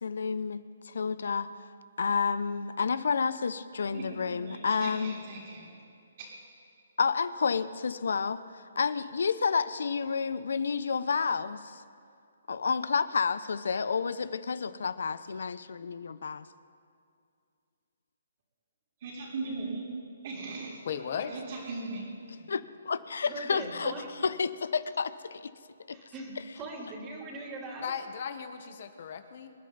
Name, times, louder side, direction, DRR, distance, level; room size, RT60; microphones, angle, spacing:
voice 1, 0.0-1.7 2.0-5.2 7.0-11.8 12.5-16.4 22.5-23.9 24.2-25.5 25.9-26.0, left 5 dB, 70° left, 15 dB, 0.7 m, -30 dB
voice 2, 3.9-5.8 6.2-6.3 19.0-19.9 20.2-20.8 21.3-22.1, right 3 dB, 55° right, -8 dB, 4.0 m, -38 dB
voice 3, 20.9-21.4 27.8-29.5, left 7 dB, 55° left, 8 dB, 1.2 m, -36 dB
voice 4, 23.2-24.1 25.9-27.9, right 2 dB, 25° right, -1 dB, 3.4 m, -40 dB
26.0 x 10.5 x 4.0 m, 2.4 s
hypercardioid pair, 140°, 0 cm